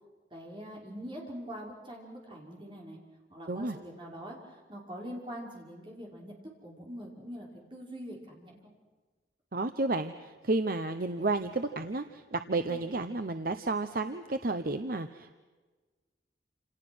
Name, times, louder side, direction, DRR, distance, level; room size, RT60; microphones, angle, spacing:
voice 1, 0.3-3.0 3.3-6.3 6.6-8.6 12.7-12.9, equal, 30° right, -2 dB, 5.5 m, -43 dB
voice 2, 9.5-15.3, right 2 dB, 50° right, 8 dB, 0.9 m, -32 dB
28.5 x 28.0 x 6.3 m, 1.3 s
head